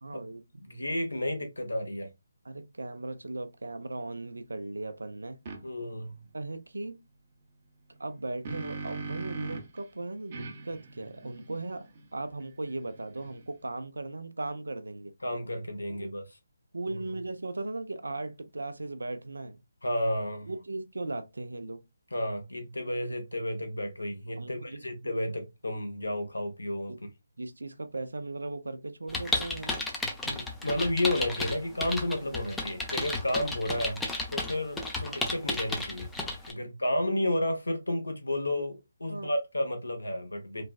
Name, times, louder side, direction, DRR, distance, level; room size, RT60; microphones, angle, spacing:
voice 1, 0.0-0.6 2.4-5.4 6.3-7.0 8.0-11.9 12.1-15.1 15.9-16.1 16.7-19.6 20.5-21.8 24.4-24.8 26.9-27.0 27.4-29.8 36.6-36.7 39.1-39.3, right 2 dB, 75° right, 0.5 m, -37 dB
voice 2, 0.6-2.1 5.6-6.2 15.2-16.2 16.9-17.0 19.8-20.5 22.1-26.9 30.2-34.0 34.3-36.1 36.5-40.6, left 1 dB, 80° left, 1.1 m, -32 dB
Setting-up, 5.5-5.6 8.0-9.8 10.3-13.6, right 3 dB, 35° right, 0.7 m, -41 dB
sound 1, 29.1-36.5, left 2 dB, 5° left, 0.5 m, -33 dB
3.2 x 2.2 x 2.3 m
figure-of-eight pair, 150°, 0 cm